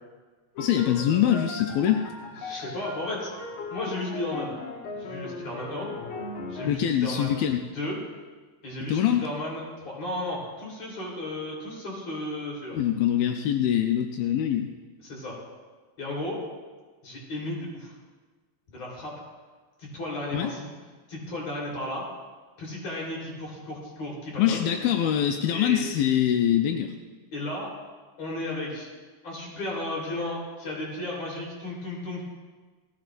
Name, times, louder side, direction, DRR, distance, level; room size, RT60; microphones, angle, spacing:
voice 1, 0.6-2.0 6.6-7.6 8.9-9.3 12.7-14.7 20.3-20.5 24.4-26.9, left 10 dB, 80° left, 4 dB, 2.1 m, -24 dB
sound 1, 0.6-6.8, left 3 dB, 65° left, 2.6 m, -38 dB
voice 2, 2.4-3.3 3.7-4.5 5.0-5.9 6.5-7.4 7.7-8.0 8.6-12.8 15.0-15.4 16.0-16.4 17.0-17.9 18.7-19.1 19.8-20.7 21.1-22.1 22.6-24.7 25.5-25.8 27.3-27.7 28.2-28.9 29.2-32.2, left 1 dB, 40° left, -4 dB, 4.6 m, -34 dB
18.5 x 15.0 x 2.6 m, 1.4 s
omnidirectional pair, 4.8 m